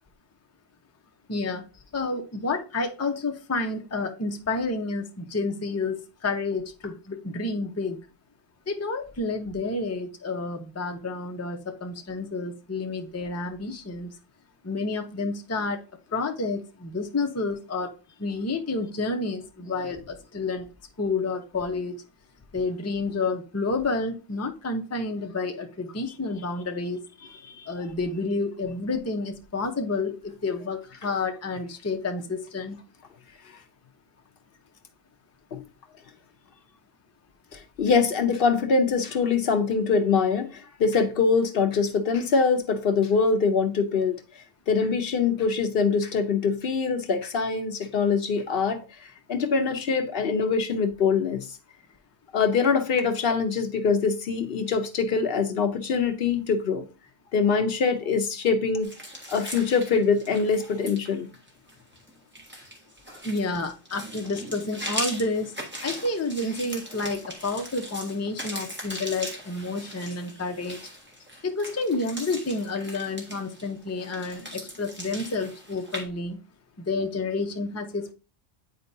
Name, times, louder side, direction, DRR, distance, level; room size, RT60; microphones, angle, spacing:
voice 1, 1.3-1.6 1.9-8.0 8.7-14.1 14.6-15.8 16.1-17.9 18.2-20.7 21.0-21.9 22.5-27.0 27.7-32.8 63.2-65.5 65.8-70.8 71.4-76.4 76.8-78.1, left 3 dB, 20° left, 0.6 m, -30 dB
voice 2, 37.5-44.2 44.7-48.8 49.3-51.5 52.3-56.8 57.3-58.9 59.3-61.3, left 5 dB, 65° left, 0.9 m, -24 dB
sound 1, 58.8-76.0, equal, 10° right, 1.5 m, -39 dB
9.2 x 4.4 x 2.7 m
omnidirectional pair, 1.1 m